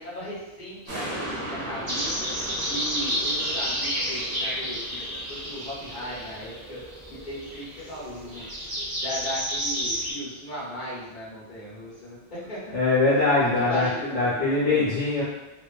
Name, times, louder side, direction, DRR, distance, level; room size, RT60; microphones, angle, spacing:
voice 1, 0.0-2.3 2.6-6.8 7.1-8.7 9.0-12.8 13.6-14.9, left 1 dB, 50° left, -7 dB, 0.8 m, -37 dB
sound 1, 0.9-7.5 7.9-8.0, right 1 dB, 55° right, 1.0 m, -38 dB
sound 2, 1.9-10.1, equal, 35° right, 0.4 m, -31 dB
voice 2, 12.7-15.2, left 3 dB, 80° left, -8 dB, 0.9 m, -22 dB
2.5 x 2.2 x 2.2 m, 1.0 s
omnidirectional pair, 1.2 m